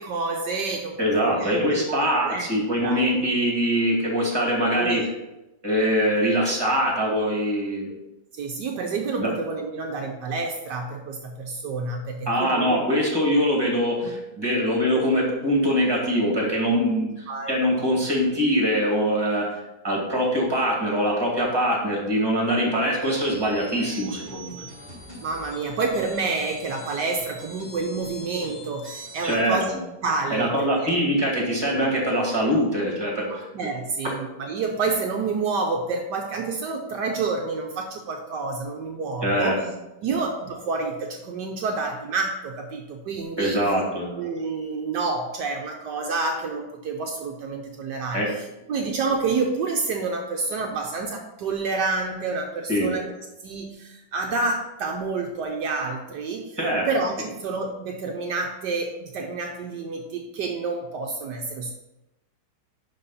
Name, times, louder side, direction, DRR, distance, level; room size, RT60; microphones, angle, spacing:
voice 1, 0.0-2.5 2.8-3.0 4.6-5.1 7.9-8.0 8.3-12.8 14.0-14.1 17.3-17.6 25.2-29.7 30.0-30.9 33.3-39.6 40.0-43.7 44.2-53.1 53.4-56.6 56.9-61.7, right 4 dB, 70° right, 2 dB, 1.3 m, -29 dB
voice 2, 1.0-5.0 5.6-7.9 9.1-9.3 12.3-24.6 29.2-29.8 30.3-33.5 39.2-39.5 40.1-40.2 43.4-44.2 48.1-48.3 52.7-52.9 56.6-56.9, equal, 15° right, -2 dB, 2.1 m, -23 dB
sound 1, 23.0-29.4, right 1 dB, 30° left, 3.0 m, -43 dB
11.0 x 4.0 x 4.2 m, 0.95 s
omnidirectional pair, 2.0 m